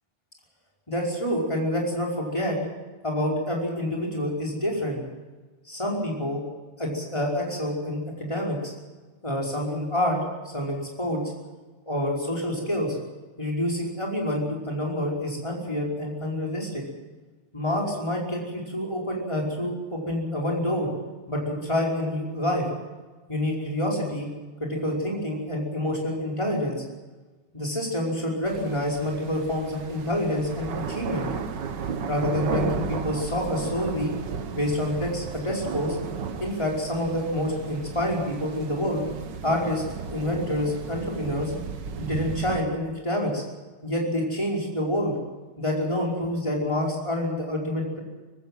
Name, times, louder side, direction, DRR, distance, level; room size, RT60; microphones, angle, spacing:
voice 1, 0.9-2.6 3.0-5.0 5.7-6.5 6.8-8.7 9.2-10.2 10.5-11.2 11.9-13.0 13.4-16.8 17.5-20.9 21.3-22.6 23.3-24.3 24.6-26.8 27.5-31.3 32.1-34.1 34.5-36.0 36.4-39.1 39.4-39.8 40.1-41.5 42.0-43.4 43.8-45.1 45.6-48.0, left 1 dB, 15° left, -2 dB, 5.3 m, -27 dB
sound 1, 28.4-42.6, right 5 dB, 60° right, 1.9 m, -34 dB
19.5 x 16.5 x 9.3 m, 1.3 s
omnidirectional pair, 2.3 m